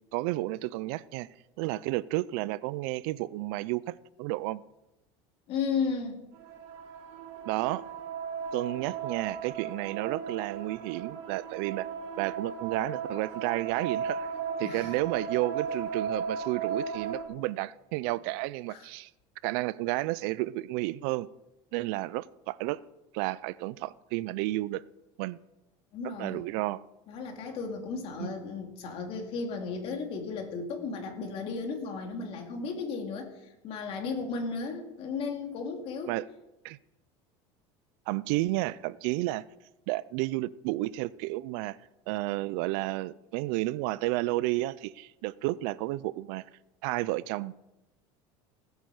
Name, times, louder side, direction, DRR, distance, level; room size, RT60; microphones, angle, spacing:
voice 1, 0.1-1.3 1.6-4.6 7.5-7.8 8.5-11.9 12.2-14.3 14.6-19.1 19.4-21.3 21.7-22.8 23.1-24.8 25.2-25.4 26.2-26.8 28.2-28.3 36.1-36.3 36.6-36.8 38.1-39.4 39.9-41.8 42.1-46.4 46.8-47.5, right 18 dB, 70° right, 0.5 m, -31 dB
voice 2, 5.5-6.3 14.6-14.9 18.7-18.9 25.9-26.4 27.1-36.1, left 4 dB, 50° left, 2.6 m, -34 dB
sound 1, 6.4-17.2, right 6 dB, 85° right, 2.9 m, -36 dB
19.0 x 8.2 x 4.8 m
cardioid pair, 145°, 13 cm